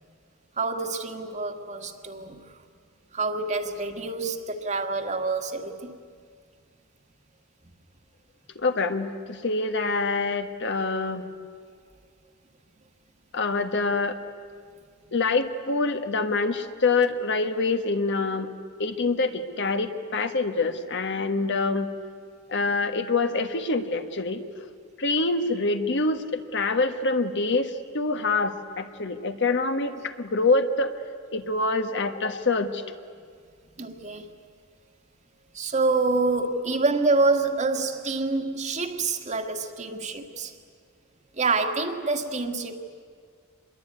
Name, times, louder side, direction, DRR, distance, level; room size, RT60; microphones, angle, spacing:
voice 1, 0.6-2.6 3.1-6.0 33.8-34.3 35.5-40.5 41.3-42.7, right 3 dB, 35° right, 1.7 m, -27 dB
voice 2, 8.5-11.5 13.3-14.2 15.1-18.5 18.8-21.9 22.5-24.7 25.0-30.9 31.3-32.8, left 3 dB, 60° left, 1.4 m, -26 dB
26.0 x 21.5 x 9.5 m
head